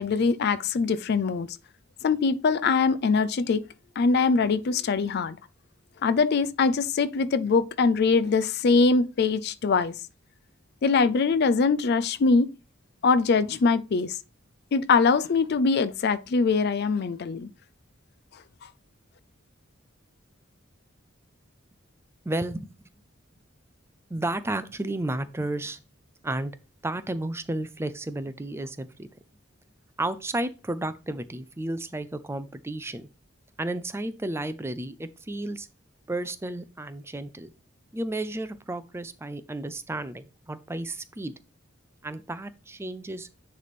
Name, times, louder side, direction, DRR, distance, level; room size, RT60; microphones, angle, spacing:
voice 1, 0.0-1.6 2.0-3.6 4.0-5.4 6.0-9.9 10.8-12.5 13.0-14.2 14.7-17.5, left 4 dB, 55° left, 0.4 m, -23 dB
voice 2, 22.3-22.7 24.1-25.8 26.2-26.5 26.8-29.1 30.0-33.1 33.6-35.7 36.1-37.5 37.9-41.3 42.0-43.3, right 1 dB, 15° right, 0.5 m, -32 dB
9.8 x 3.3 x 4.1 m
head